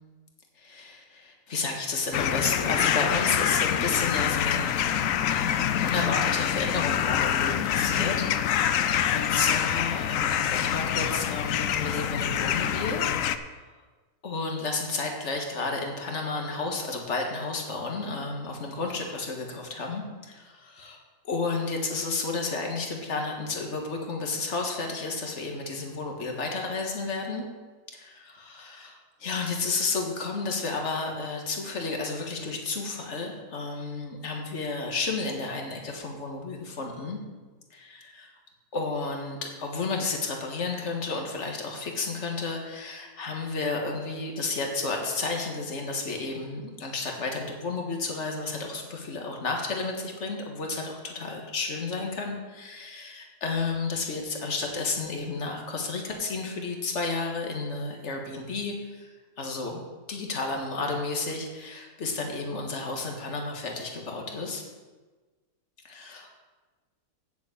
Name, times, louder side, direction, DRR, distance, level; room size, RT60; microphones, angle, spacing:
voice 1, 0.6-4.8 5.3-13.1 14.2-27.5 27.9-37.2 37.7-38.3 38.7-59.1 59.4-59.8 60.1-64.6 65.8-66.5, left 3 dB, 50° left, 1 dB, 1.8 m, -32 dB
sound 1, 2.1-13.4, left 10 dB, 70° left, 0.9 m, -26 dB
7.5 x 7.3 x 8.3 m, 1.3 s
omnidirectional pair, 1.6 m